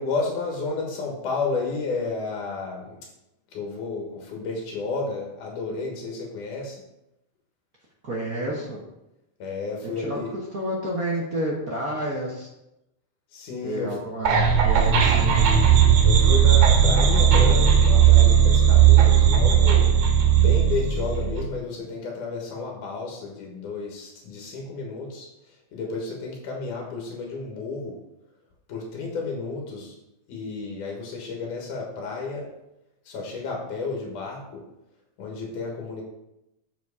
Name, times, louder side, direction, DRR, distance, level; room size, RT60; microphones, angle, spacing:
voice 1, 0.0-3.0 3.5-6.8 9.4-10.3 13.3-14.0 16.0-19.9 20.3-28.0 28.7-30.0 30.3-32.5 33.1-34.6 35.2-36.0, left 3 dB, 90° left, 0 dB, 2.9 m, -32 dB
voice 2, 8.0-8.8 10.0-10.2 10.5-12.5 13.6-15.4, right 1 dB, 60° right, -3 dB, 0.9 m, -30 dB
sound 1, 14.3-21.4, right 8 dB, 80° right, 2.5 m, -17 dB
7.3 x 6.1 x 4.8 m, 0.89 s
omnidirectional pair, 3.5 m